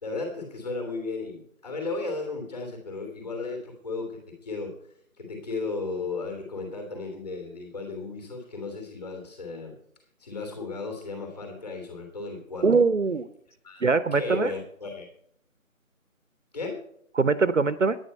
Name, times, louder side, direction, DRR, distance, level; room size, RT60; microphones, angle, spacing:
voice 1, 0.0-4.7 5.2-9.7 10.2-12.7 13.6-13.8 14.1-15.1 16.5-16.8, left 3 dB, 30° left, 3 dB, 3.0 m, -35 dB
voice 2, 12.6-13.3 13.8-14.5 17.2-18.0, right 4 dB, 60° right, 16 dB, 0.8 m, -22 dB
10.0 x 9.9 x 5.4 m, 0.68 s
figure-of-eight pair, 165°, 42 cm